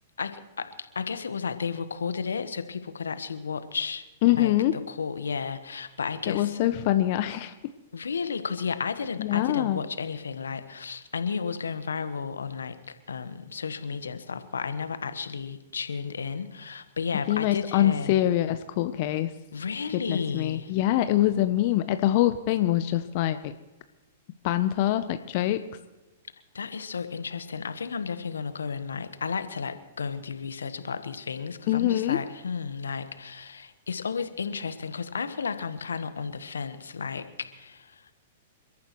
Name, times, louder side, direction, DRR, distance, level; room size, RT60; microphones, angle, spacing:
voice 1, 0.2-4.0 4.4-6.6 7.9-18.2 19.5-20.7 26.5-38.1, left 5 dB, 75° left, 11 dB, 1.2 m, -33 dB
voice 2, 4.2-4.7 6.3-7.5 9.2-9.8 17.3-19.3 19.9-23.5 24.4-25.6 31.7-32.2, left 13 dB, 50° left, 10 dB, 0.7 m, -24 dB
28.5 x 14.0 x 3.1 m, 1.0 s
figure-of-eight pair, 110°, 0 cm